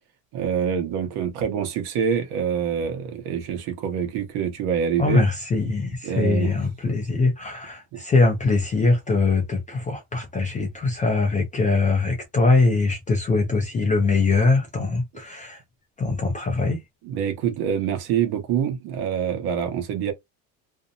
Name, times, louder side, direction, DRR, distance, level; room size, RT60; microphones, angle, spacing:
voice 1, 0.3-5.2 6.0-6.6 7.9-8.0 17.0-20.1, right 8 dB, 55° right, 0.9 m, -25 dB
voice 2, 5.0-15.6 16.0-16.8, left 3 dB, 20° left, 0.3 m, -22 dB
2.6 x 2.1 x 2.5 m
cardioid pair, 135°, 47 cm